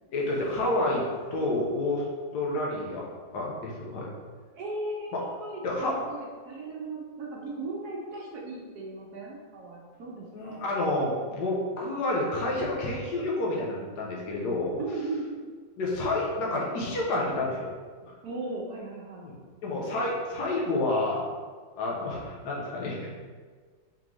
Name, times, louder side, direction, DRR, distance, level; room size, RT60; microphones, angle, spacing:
voice 1, 0.1-2.0 2.3-3.0 3.3-4.1 5.1-5.2 5.6-6.0 10.3-14.8 15.8-17.7 18.0-18.1 19.2-19.4 19.6-21.3 21.8-23.1, left 2 dB, 70° left, -3 dB, 1.3 m, -29 dB
voice 2, 4.5-5.6 6.0-10.6 14.8-15.5 18.2-19.2, right 2 dB, 65° right, -3 dB, 1.2 m, -37 dB
3.6 x 3.6 x 3.0 m, 1.5 s
omnidirectional pair, 2.0 m